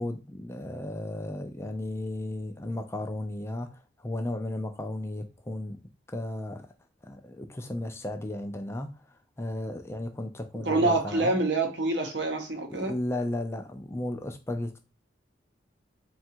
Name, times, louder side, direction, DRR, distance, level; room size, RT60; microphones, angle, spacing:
voice 1, 0.0-5.8 6.1-6.7 7.0-11.3 12.7-14.8, left 1 dB, 15° left, 0.3 m, -34 dB
voice 2, 10.7-12.9, right 2 dB, 60° right, 0.8 m, -26 dB
3.6 x 2.3 x 4.3 m
head